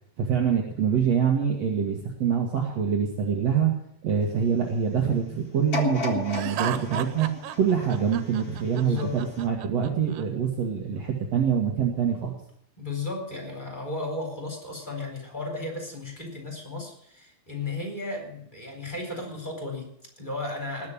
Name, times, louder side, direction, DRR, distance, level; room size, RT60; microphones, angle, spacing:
voice 1, 0.2-3.7 4.0-7.3 7.6-12.3, right 7 dB, 55° right, 1 dB, 1.9 m, -25 dB
sound 1, 5.7-8.8 9.3-9.4, left 4 dB, 50° left, 1.0 m, -33 dB
Laughter, 6.3-10.2, right 11 dB, 90° right, 3.2 m, -35 dB
voice 2, 8.7-9.2 12.8-20.9, left 3 dB, 10° left, 2 dB, 3.6 m, -34 dB
19.5 x 6.6 x 9.9 m, 0.69 s
omnidirectional pair, 5.3 m